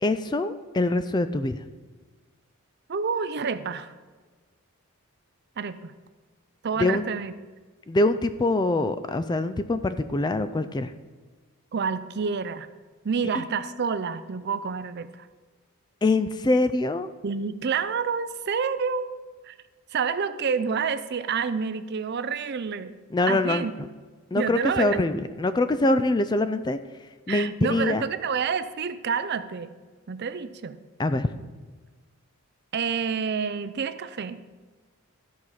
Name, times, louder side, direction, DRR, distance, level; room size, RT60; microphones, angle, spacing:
voice 1, 0.0-1.6 6.8-7.1 7.9-10.9 16.0-17.1 23.1-23.7 24.3-26.8 27.3-28.1 31.0-31.3, left 2 dB, 20° left, 11 dB, 0.3 m, -24 dB
voice 2, 2.9-3.9 5.6-5.9 6.6-7.3 11.7-12.7 13.0-15.3 17.2-19.1 19.4-19.6 19.9-22.9 23.3-23.7 24.3-25.0 27.3-29.7 30.1-30.8 32.7-34.4, right 6 dB, 45° right, 13 dB, 0.5 m, -28 dB
13.0 x 4.7 x 5.6 m, 1.4 s
head